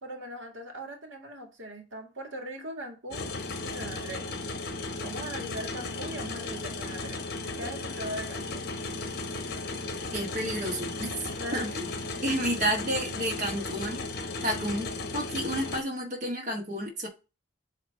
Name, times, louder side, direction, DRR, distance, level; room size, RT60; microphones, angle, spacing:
voice 1, 0.0-3.3 3.6-4.2 5.0-7.2 7.6-8.7 11.4-11.7, right 1 dB, 75° right, 1.7 m, -40 dB
sound 1, 3.1-15.8, left 3 dB, 50° left, 0.9 m, -35 dB
voice 2, 10.1-11.1 11.5-11.9 12.2-14.0 14.4-17.1, equal, 40° right, 1.5 m, -30 dB
7.8 x 2.9 x 4.5 m
head